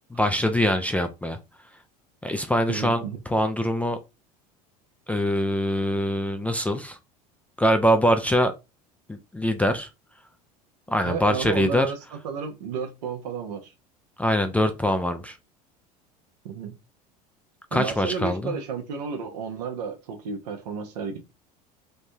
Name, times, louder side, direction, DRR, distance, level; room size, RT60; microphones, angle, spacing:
voice 1, 0.1-1.4 2.2-4.0 5.1-7.0 7.6-8.5 9.1-9.9 10.9-11.9 14.2-15.4 17.7-18.6, equal, 5° left, 0.3 m, -23 dB
voice 2, 2.7-3.2 11.0-12.0 12.2-13.7 16.4-16.8 17.7-21.2, right 6 dB, 80° right, 0.7 m, -32 dB
3.3 x 2.1 x 2.6 m
hypercardioid pair, 85°, 20 cm